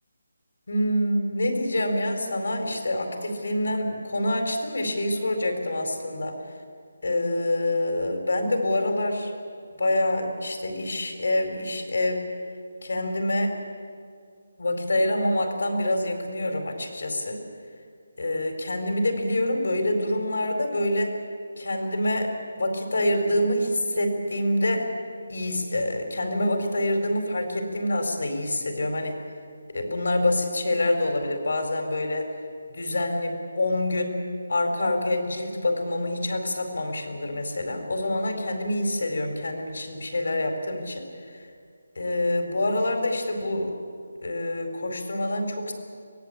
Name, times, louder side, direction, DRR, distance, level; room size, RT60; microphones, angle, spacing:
voice 1, 0.7-6.3 7.0-9.4 9.7-12.2 12.8-13.5 14.6-17.4 18.2-21.1 21.6-22.3 22.6-24.9 25.3-29.2 29.7-32.3 32.7-34.2 34.5-41.0 41.3-41.4 42.0-43.7 44.2-45.7, left 1 dB, 70° left, 5 dB, 4.4 m, -26 dB
24.5 x 18.5 x 8.8 m, 2.3 s
figure-of-eight pair, 170°, 0 cm